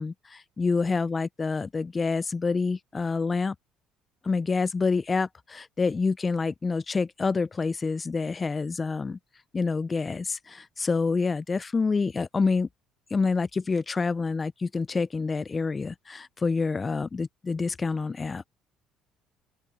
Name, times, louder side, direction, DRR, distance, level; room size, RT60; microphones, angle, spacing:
voice 1, 0.0-3.5 4.2-9.2 9.5-12.7 13.1-18.5, left 4 dB, 25° left, 0.5 m, -27 dB
open air
supercardioid pair, 90°, 0 cm